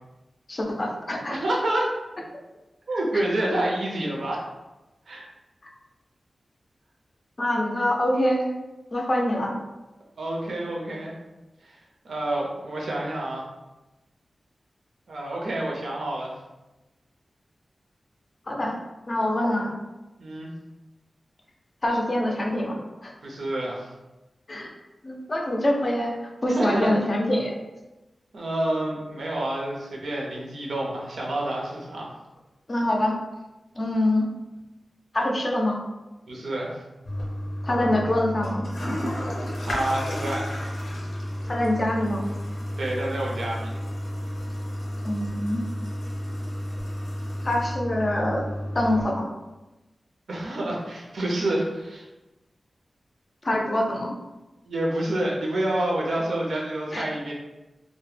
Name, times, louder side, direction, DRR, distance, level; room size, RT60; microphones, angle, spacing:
voice 1, 0.5-1.4 3.1-3.2 7.4-8.4 8.9-9.6 18.5-18.8 19.1-19.8 21.8-23.1 24.5-24.7 25.0-27.6 32.7-33.2 33.8-34.3 35.1-35.8 37.6-38.7 41.4-42.2 45.0-45.6 47.4-48.4 48.7-49.3 53.4-54.2 56.9-57.1, left 1 dB, 35° left, 1 dB, 0.4 m, -25 dB
voice 2, 1.3-1.9 2.9-4.4 5.1-5.3 10.2-11.1 11.6-11.8 12.0-13.4 15.1-16.3 20.2-20.5 23.2-23.9 26.5-26.9 28.3-32.1 36.3-36.8 39.6-40.7 42.8-43.7 50.3-52.1 54.7-57.3, right 1 dB, 85° right, -3 dB, 0.6 m, -28 dB
Toilet flush, 37.0-49.0, equal, 85° left, 0.5 m, -32 dB
2.2 x 2.0 x 3.1 m, 1.0 s
wide cardioid pair, 110°, 0 cm